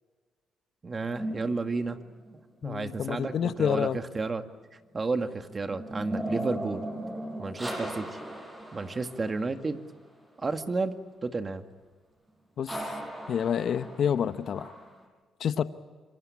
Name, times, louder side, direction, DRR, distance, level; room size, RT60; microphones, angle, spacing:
voice 1, 0.8-2.0 2.6-4.4 4.9-6.8 7.4-8.2 8.7-9.8 10.4-11.0 11.2-11.7, right 3 dB, 30° right, 8 dB, 1.9 m, -31 dB
sound 1, 1.2-2.5 5.0-9.8 12.7-15.1, right 1 dB, 15° right, 6.8 m, -38 dB
voice 2, 2.6-4.0 12.6-12.8 13.3-14.7 15.4-15.6, left 8 dB, 65° left, 11 dB, 1.0 m, -28 dB
26.5 x 24.0 x 8.5 m, 1.5 s
cardioid pair, 90°, 0 cm